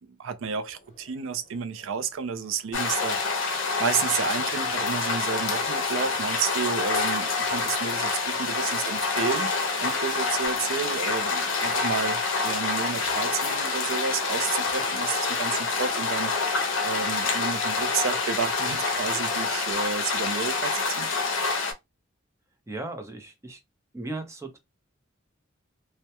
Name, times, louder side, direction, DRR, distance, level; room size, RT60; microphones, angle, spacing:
voice 1, 0.0-9.5 9.8-21.1, right 6 dB, 75° right, 0.4 m, -31 dB
sound 1, 0.7-19.7, left 1 dB, 40° left, 0.8 m, -46 dB
sound 2, 2.7-21.7, left 4 dB, 65° left, 0.5 m, -27 dB
voice 2, 22.7-23.6 23.9-24.6, right 2 dB, 15° right, 0.5 m, -36 dB
2.2 x 2.1 x 2.8 m
head